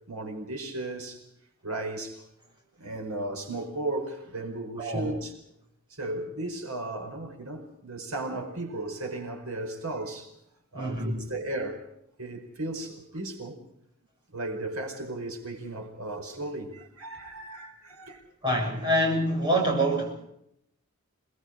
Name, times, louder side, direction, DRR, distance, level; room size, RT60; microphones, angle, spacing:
voice 1, 0.1-1.2 1.6-2.2 2.8-5.3 5.9-10.3 10.7-11.8 12.2-13.6 14.3-18.2, right 2 dB, 75° right, 4.9 m, -35 dB
voice 2, 4.8-5.2 10.7-11.3 18.4-20.2, right 1 dB, 20° right, 6.8 m, -26 dB
27.5 x 20.5 x 5.0 m
head